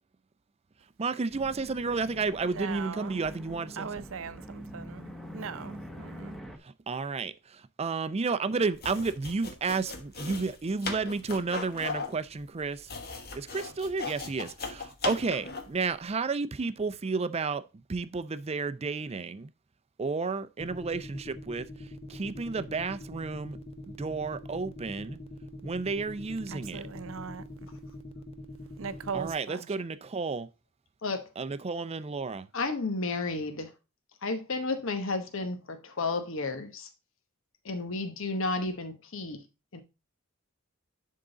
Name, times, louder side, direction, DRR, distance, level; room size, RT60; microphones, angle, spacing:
voice 1, 1.0-3.9 6.9-12.9 13.3-17.6 17.9-19.5 20.0-21.7 22.1-23.6 23.9-25.2 25.6-26.8 29.1-30.5 31.4-32.5, right 4 dB, 30° right, 0.5 m, -32 dB
sound 1, 1.3-6.6, equal, ahead, 0.9 m, -45 dB
voice 2, 2.4-3.3 3.8-6.4 26.5-27.5 28.8-29.7, right 6 dB, 65° right, 0.6 m, -39 dB
sound 2, 8.7-15.8, left 4 dB, 50° left, 1.4 m, -38 dB
sound 3, 20.6-29.3, left 1 dB, 30° left, 0.7 m, -43 dB
voice 3, 32.5-33.7 34.2-36.9 37.6-39.4 39.7-39.8, left 3 dB, 65° left, 1.0 m, -32 dB
10.5 x 3.8 x 3.8 m
head